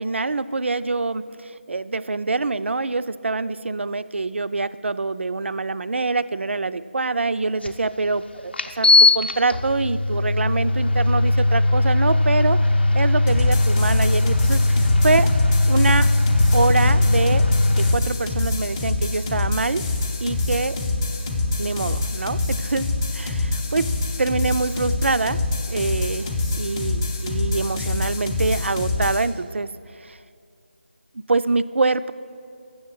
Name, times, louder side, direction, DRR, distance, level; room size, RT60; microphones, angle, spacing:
voice 1, 0.0-12.6 12.9-15.3 15.7-16.1 16.5-17.5 17.8-19.8 20.2-20.8 21.6-22.9 23.1-23.9 24.2-25.4 25.7-29.7 30.1-30.2 31.1-32.1, right 3 dB, 75° right, 14 dB, 0.4 m, -25 dB
sound 1, 7.6-7.7 8.5-17.9, left 2 dB, 60° left, 0.6 m, -19 dB
sound 2, 13.3-29.3, left 2 dB, 15° left, 0.7 m, -26 dB
7.4 x 7.0 x 7.6 m, 2.5 s
figure-of-eight pair, 165°, 7 cm